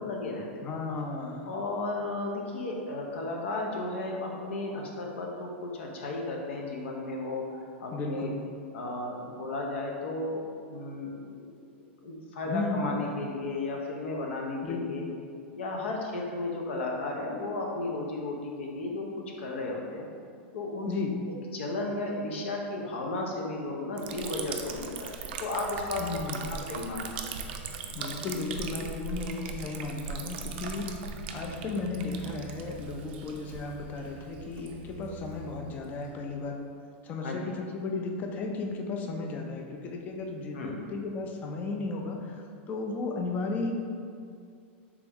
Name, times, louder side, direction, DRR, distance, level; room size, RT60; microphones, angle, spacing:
voice 1, 0.0-0.7 1.5-8.3 8.7-10.4 10.7-15.0 15.5-19.1 19.4-20.1 20.5-20.9 21.5-26.0 26.5-27.2 37.2-37.5 40.5-40.8, left 2 dB, 85° left, 0 dB, 0.7 m, -34 dB
voice 2, 0.6-1.5 7.9-8.3 12.4-13.0 14.6-15.0 20.9-21.2 26.0-26.5 27.9-36.6 37.0-43.7, left 3 dB, 25° left, 2 dB, 0.4 m, -34 dB
Liquid, 24.0-36.4, right 6 dB, 60° right, 0.4 m, -40 dB
3.5 x 3.0 x 3.5 m, 2.3 s
supercardioid pair, 150°, 6 cm